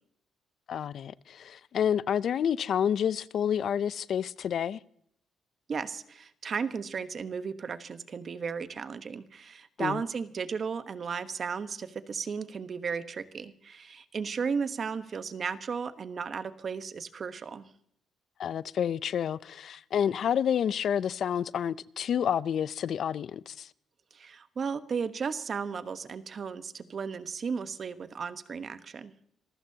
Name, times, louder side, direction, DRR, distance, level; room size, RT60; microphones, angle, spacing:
voice 1, 0.7-4.8 9.8-10.0 18.4-23.7, left 8 dB, 65° left, 0.5 m, -29 dB
voice 2, 5.7-17.7 24.1-29.1, right 5 dB, 45° right, 1.1 m, -35 dB
26.0 x 15.0 x 2.8 m
cardioid pair, 90°, 0 cm